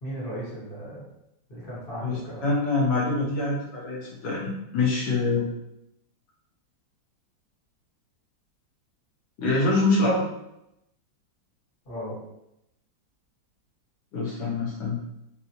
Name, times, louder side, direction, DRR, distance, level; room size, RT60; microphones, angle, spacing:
voice 1, 0.0-1.1 1.5-2.5 11.8-12.2, equal, 35° left, -7 dB, 1.0 m, -36 dB
voice 2, 2.0-5.5 9.4-10.2 14.1-15.0, left 3 dB, 70° left, -4 dB, 1.5 m, -25 dB
3.8 x 2.0 x 2.8 m, 0.84 s
omnidirectional pair, 2.1 m